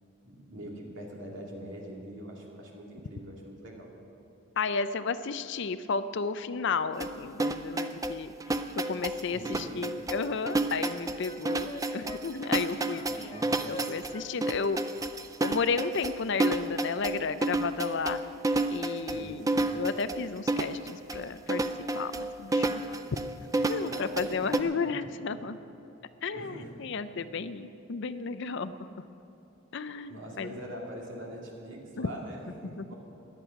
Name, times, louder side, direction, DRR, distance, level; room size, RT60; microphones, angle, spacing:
voice 1, 0.2-3.9 9.3-9.8 13.1-13.7 19.1-19.7 23.8-25.1 26.3-26.9 30.1-33.0, right 1 dB, 60° right, -2 dB, 2.7 m, -43 dB
voice 2, 4.6-13.3 13.6-14.8 15.4-18.2 18.7-19.4 19.7-21.6 21.9-23.2 23.7-25.6 26.2-28.8 29.7-30.6 32.0-32.1 32.6-32.9, left 5 dB, 55° left, 13 dB, 0.5 m, -33 dB
sound 1, 7.0-24.6, right 2 dB, 15° right, 0.4 m, -30 dB
Wind instrument woodwind instrument, 9.6-14.3 14.5-15.6 15.9-16.1, left 2 dB, 25° left, 0.8 m, -46 dB
17.0 x 11.0 x 5.8 m, 2.9 s
head